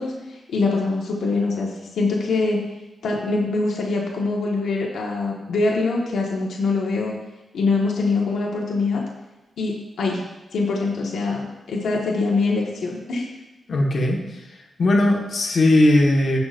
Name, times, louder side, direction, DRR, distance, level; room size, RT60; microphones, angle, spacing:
voice 1, 0.0-2.6 3.0-7.1 7.5-9.0 9.6-13.3, left 3 dB, 85° left, -3 dB, 1.5 m, -24 dB
voice 2, 13.7-14.2 14.8-16.4, left 1 dB, 45° left, -1 dB, 1.5 m, -18 dB
16.0 x 6.1 x 2.6 m, 1.1 s
wide cardioid pair, 175°, 0 cm